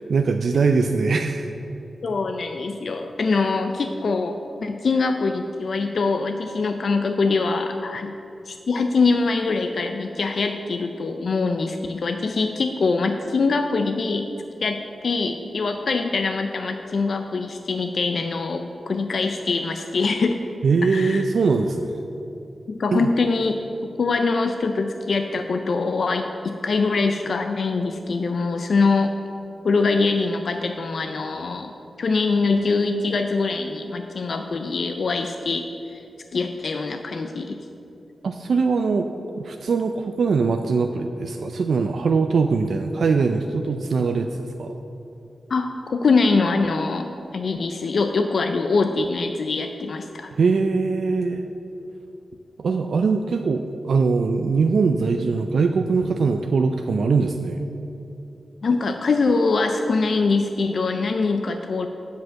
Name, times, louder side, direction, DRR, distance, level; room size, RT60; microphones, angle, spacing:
voice 1, 0.0-1.5 20.6-22.0 22.9-23.1 38.2-39.1 39.4-44.8 50.3-51.4 52.6-57.6, right 4 dB, 75° right, 5 dB, 0.4 m, -22 dB
voice 2, 2.0-8.1 8.5-14.3 14.6-20.4 20.8-21.2 22.7-23.5 23.8-29.1 29.6-31.7 32.0-36.0 36.3-37.6 45.5-50.3 58.6-61.9, left 4 dB, 65° left, 6 dB, 0.4 m, -23 dB
8.0 x 5.2 x 7.4 m, 2.9 s
wide cardioid pair, 115°, 0 cm